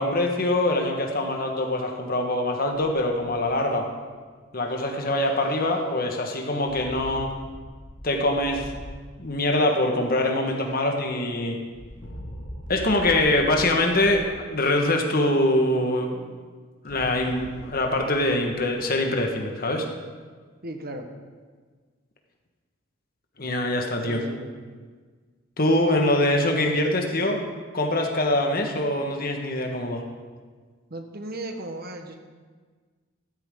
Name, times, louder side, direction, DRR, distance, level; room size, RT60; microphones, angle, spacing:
voice 1, 0.0-3.9 4.5-7.3 8.0-8.7 9.2-11.6 12.7-16.3 16.8-19.8 23.4-24.2 25.6-27.5 27.7-30.0, left 1 dB, 50° left, 2 dB, 1.5 m, -24 dB
sound 1, 3.0-3.8 4.7-5.8 6.6-9.2 9.6-11.0 11.7-14.3 16.8-19.2, equal, 75° left, 1.7 m, -43 dB
voice 2, 20.6-21.1 24.1-24.8 30.9-32.2, right 1 dB, 50° right, 5 dB, 1.2 m, -36 dB
14.0 x 12.0 x 3.8 m, 1.5 s
head